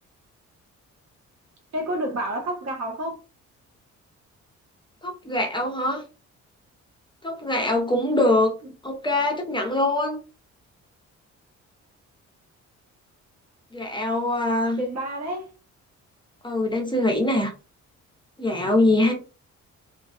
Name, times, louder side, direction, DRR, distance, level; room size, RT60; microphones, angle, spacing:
voice 1, 1.7-3.2 8.6-8.7 14.8-15.5, right 1 dB, 60° right, 0.9 m, -29 dB
voice 2, 5.0-6.0 7.2-8.5 8.8-10.2 13.7-14.8 16.4-17.5 18.4-19.1, left 1 dB, 15° left, 0.6 m, -23 dB
2.5 x 2.2 x 2.3 m
cardioid pair, 90°, 30 cm